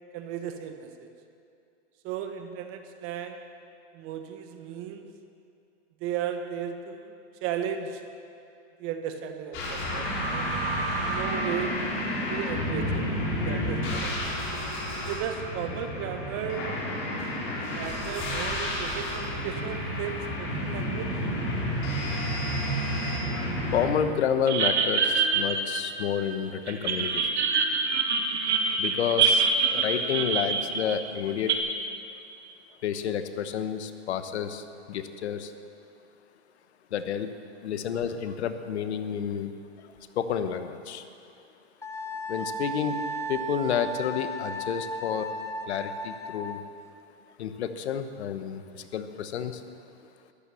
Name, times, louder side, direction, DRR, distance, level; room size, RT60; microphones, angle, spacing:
voice 1, 0.1-1.1 2.0-3.4 3.9-5.1 6.0-8.0 8.8-10.6 11.0-11.7 12.3-13.1 13.4-14.5 15.1-16.7 17.7-21.1, right 8 dB, 40° right, 7 dB, 1.5 m, -35 dB
sound 1, 9.5-23.9, equal, 35° left, 4.3 m, -30 dB
voice 2, 23.7-27.3 28.8-31.6 32.8-35.5 36.9-37.3 37.6-39.9 40.1-41.0 42.3-43.0 43.3-45.3 45.7-46.6 47.4-49.6, left 8 dB, 75° left, 10 dB, 1.2 m, -30 dB
sound 2, 24.5-26.3 26.7-31.6, right 5 dB, 80° right, 2.0 m, -25 dB
Wind instrument woodwind instrument, 41.8-46.7, right 1 dB, 10° left, 0.6 m, -35 dB
13.5 x 12.5 x 7.0 m, 2.5 s
hypercardioid pair, 125°, 33 cm